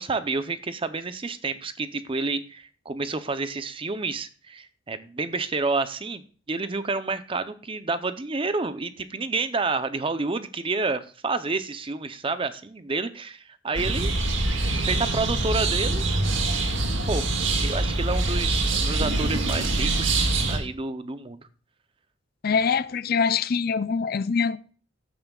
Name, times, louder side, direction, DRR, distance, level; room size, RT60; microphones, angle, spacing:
voice 1, 0.0-14.1 14.8-16.1 16.4-16.6 17.1-17.2 17.6-21.4, right 3 dB, 25° right, 0.6 m, -29 dB
sound 1, 13.7-20.6, right 2 dB, 75° right, 1.8 m, -24 dB
voice 2, 22.4-24.6, left 5 dB, 50° left, 0.4 m, -24 dB
15.0 x 8.9 x 2.3 m
head